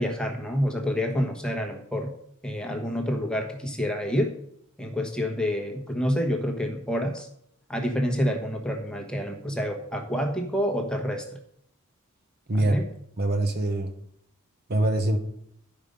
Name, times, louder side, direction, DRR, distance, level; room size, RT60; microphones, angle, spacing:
voice 1, 0.0-2.1 2.4-4.3 4.8-7.3 7.7-11.2 12.6-12.8, equal, 5° left, 2 dB, 1.2 m, -28 dB
voice 2, 13.2-13.9 14.7-15.2, right 1 dB, 45° right, 6 dB, 1.0 m, -23 dB
11.5 x 5.1 x 5.4 m, 0.71 s
head